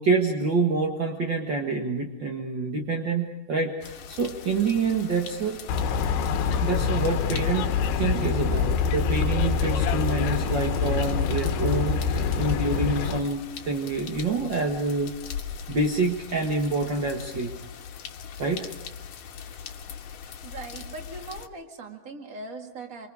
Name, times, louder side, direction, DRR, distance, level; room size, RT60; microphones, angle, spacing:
voice 1, 0.0-5.6 6.6-15.1 15.7-17.5 18.4-18.6, right 3 dB, 55° right, 1 dB, 1.2 m, -27 dB
sound 1, 3.8-21.5, left 8 dB, 65° left, 2.7 m, -41 dB
sound 2, 5.7-13.2, left 6 dB, 80° left, 3.1 m, -25 dB
voice 2, 20.4-23.1, right 3 dB, 35° right, 4 dB, 1.5 m, -40 dB
26.0 x 26.0 x 4.9 m, 0.96 s
omnidirectional pair, 4.6 m